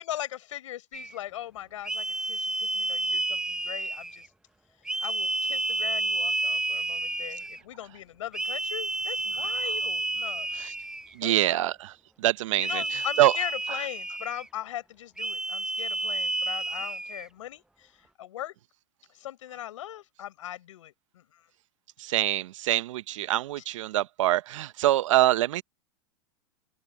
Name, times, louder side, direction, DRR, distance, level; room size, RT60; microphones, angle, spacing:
voice 1, 0.0-4.3 5.0-10.5 11.2-11.7 12.6-17.9 18.2-18.5 19.1-21.4 23.6-23.7, left 12 dB, 85° left, 5.9 m, -39 dB
sound 1, 0.9-1.2 1.8-4.3 4.8-7.6 8.3-11.1 12.6-14.5 15.2-17.3, right 1 dB, 5° right, 0.7 m, -30 dB
voice 2, 11.2-11.9 12.2-13.3 22.0-25.6, right 14 dB, 80° right, 0.9 m, -25 dB
open air
supercardioid pair, 130°, 16 cm